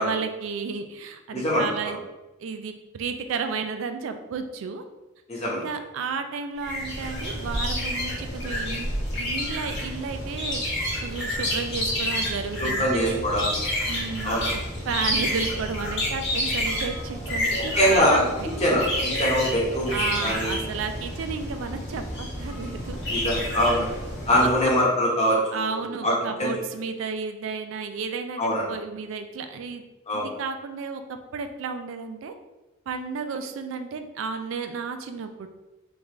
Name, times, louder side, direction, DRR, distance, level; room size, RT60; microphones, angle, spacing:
voice 1, 0.0-2.0 2.4-4.8 5.5-13.3 13.9-14.6 14.9-18.5 19.9-23.4 23.7-23.9 24.4-24.8 25.5-29.8 30.1-32.3 32.9-35.5, right 5 dB, 75° right, 7 dB, 0.3 m, -33 dB
voice 2, 1.3-2.0 5.3-5.6 12.6-13.5 14.2-14.5 17.7-18.8 19.2-19.9 20.2-20.6 23.1-23.9 24.3-26.1 26.4-26.5 28.4-28.6 30.1-30.3, equal, 35° left, -5 dB, 1.0 m, -23 dB
sound 1, 6.6-24.6, left 1 dB, 60° left, 1.1 m, -29 dB
3.5 x 2.4 x 3.1 m, 1.1 s
head